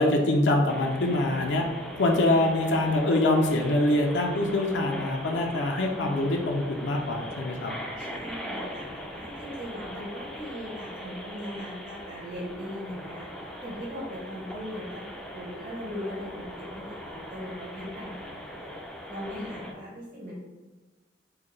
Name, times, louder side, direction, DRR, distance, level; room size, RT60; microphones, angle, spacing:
voice 1, 0.0-1.6 1.9-7.7, left 1 dB, 85° left, 1 dB, 0.5 m, -24 dB
sound 1, 0.7-19.7, equal, 5° left, 0.4 m, -40 dB
voice 2, 8.0-13.3 13.6-15.0 15.3-18.7 19.1-20.3, equal, 50° right, -7 dB, 1.3 m, -39 dB
4.7 x 2.2 x 3.1 m, 1.2 s
head